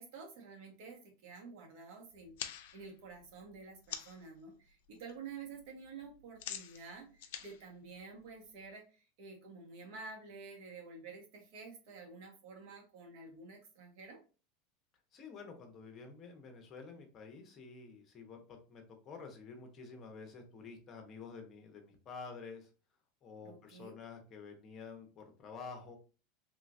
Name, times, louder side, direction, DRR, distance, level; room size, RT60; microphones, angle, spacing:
voice 1, 0.0-14.2 23.4-23.9, right 4 dB, 65° right, 1 dB, 1.3 m, -50 dB
sound 1, 2.1-4.3 4.7-5.1 5.4-8.7, left 10 dB, 75° left, 0.4 m, -47 dB
voice 2, 15.1-18.4 18.7-22.7 23.2-26.0, left 5 dB, 35° left, 4 dB, 0.9 m, -49 dB
3.2 x 3.0 x 2.6 m, 0.34 s
supercardioid pair, 125°, 0 cm